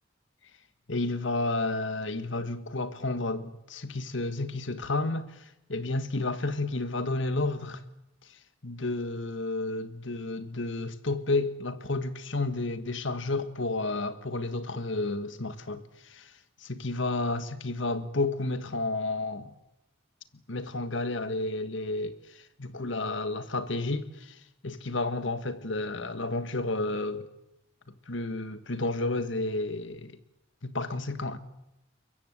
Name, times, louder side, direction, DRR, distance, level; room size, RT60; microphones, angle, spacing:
voice 1, 0.9-7.8 8.6-16.3 16.6-19.5 20.5-24.4 24.6-27.3 28.1-30.2 30.6-31.4, left 2 dB, 70° left, 1.7 m, -31 dB
22.5 x 22.0 x 8.3 m
head